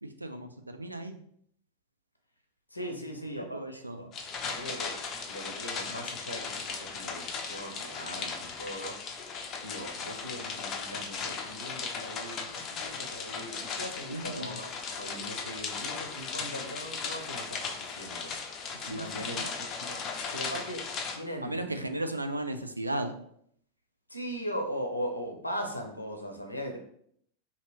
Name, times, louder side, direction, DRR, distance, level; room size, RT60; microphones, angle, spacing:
voice 1, 0.0-1.2 3.2-4.1 14.1-14.6 18.9-19.5 21.4-23.1, right 1 dB, 85° right, 7 dB, 0.4 m, -36 dB
voice 2, 2.7-4.1 4.5-4.9 5.3-8.9 9.6-18.3 18.8-20.0 20.3-20.9 21.2-21.8 24.1-26.8, equal, 85° left, 3 dB, 0.7 m, -39 dB
sound 1, 4.1-21.2, left 5 dB, 30° left, 0.5 m, -37 dB
2.9 x 2.8 x 4.0 m, 0.67 s
figure-of-eight pair, 90°, 0 cm